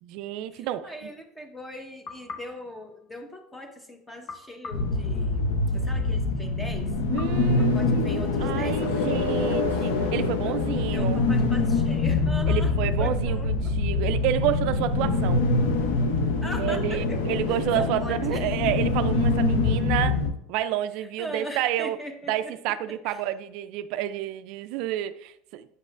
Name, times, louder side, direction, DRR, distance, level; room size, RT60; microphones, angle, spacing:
voice 1, 0.0-0.9 7.1-11.2 12.5-15.4 16.6-20.2 20.5-22.0 22.3-25.7, right 12 dB, 65° right, 0.3 m, -29 dB
voice 2, 0.5-5.5 5.7-6.9 7.6-9.9 10.4-10.6 10.9-13.7 16.4-17.2 17.5-18.5 21.0-22.6 22.9-23.2, equal, 10° left, 0.9 m, -40 dB
sound 1, 2.0-3.6 4.3-5.9 7.2-8.5, left 3 dB, 50° left, 0.9 m, -45 dB
sound 2, 4.7-20.3, left 3 dB, 80° left, 0.6 m, -25 dB
7.7 x 5.3 x 2.4 m
supercardioid pair, 100°, 0 cm